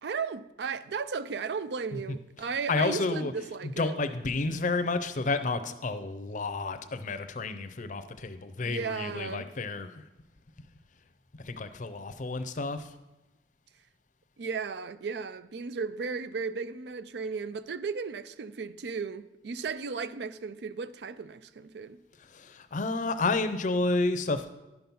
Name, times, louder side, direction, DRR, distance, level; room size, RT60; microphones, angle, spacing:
voice 1, 0.0-4.0 8.6-9.5 14.4-22.0, right 5 dB, 65° right, 0.4 m, -35 dB
voice 2, 2.7-3.3 3.6-10.1 11.3-12.9 22.2-24.5, left 3 dB, 45° left, 0.6 m, -30 dB
11.0 x 5.9 x 5.4 m
head